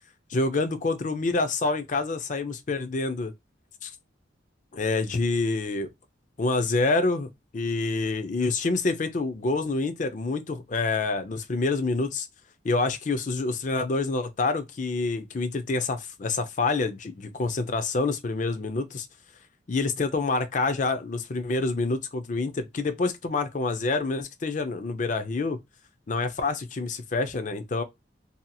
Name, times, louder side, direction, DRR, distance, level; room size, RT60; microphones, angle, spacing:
voice 1, 0.3-3.3 3.8-3.9 4.7-5.9 6.4-12.3 12.6-19.1 19.7-25.6 26.1-27.8, left 3 dB, 40° left, 0.5 m, -27 dB
2.8 x 2.7 x 2.2 m
head